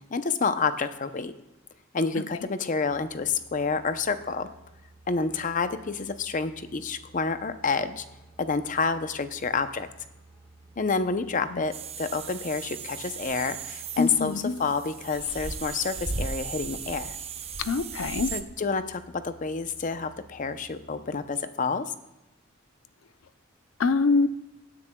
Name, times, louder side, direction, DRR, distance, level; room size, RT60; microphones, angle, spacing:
voice 1, 0.0-1.4 1.9-4.5 5.1-8.0 8.4-9.9 10.8-17.2 18.3-21.9, left 4 dB, 40° left, 11 dB, 0.6 m, -29 dB
sound 1, 2.9-21.2, right 2 dB, 10° left, 1.4 m, -54 dB
sound 2, 11.7-18.4, right 5 dB, 30° right, 0.6 m, -37 dB
voice 2, 14.0-14.6 17.6-18.3 23.8-24.3, left 4 dB, 80° left, 13 dB, 0.6 m, -25 dB
17.0 x 9.8 x 2.3 m, 0.97 s
head